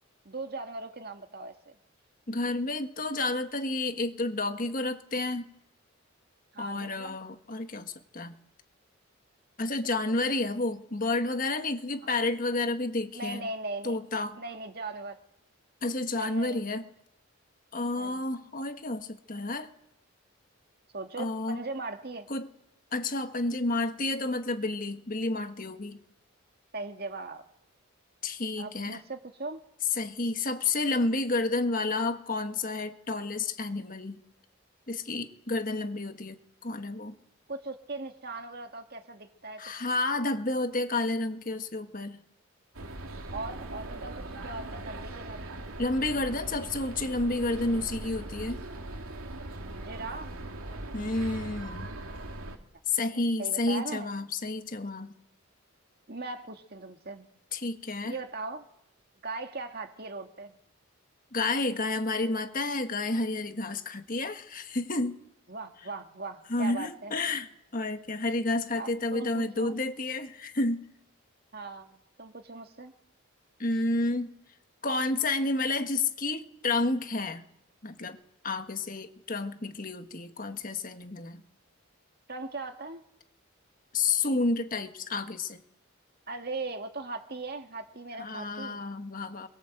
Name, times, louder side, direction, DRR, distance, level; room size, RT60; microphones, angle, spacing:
voice 1, 0.2-1.8 6.5-7.2 10.0-10.4 13.1-14.0 14.4-15.2 16.1-16.7 18.0-18.2 20.9-22.3 26.7-27.4 28.6-29.6 37.5-39.9 43.3-45.5 49.8-50.3 53.4-54.1 56.1-57.3 58.0-58.7 59.2-60.6 65.5-67.1 68.8-69.8 71.5-72.9 82.3-83.0 86.3-88.8, right 3 dB, 45° right, 5 dB, 2.2 m, -39 dB
voice 2, 2.3-5.5 6.6-8.3 9.6-13.5 13.8-14.4 15.8-16.8 17.7-19.7 21.2-21.6 22.3-22.5 22.9-26.0 28.2-29.0 30.0-34.2 34.9-37.1 39.6-42.2 45.8-48.6 50.9-51.9 52.9-55.1 57.5-58.1 61.3-65.2 66.5-67.5 67.7-70.9 73.6-74.3 74.8-77.4 77.8-78.2 78.4-81.4 83.9-85.6 88.2-89.5, left 2 dB, 40° left, 7 dB, 1.5 m, -30 dB
sound 1, 42.7-52.6, right 1 dB, 85° right, 2.8 m, -40 dB
27.5 x 22.0 x 7.9 m, 0.77 s
head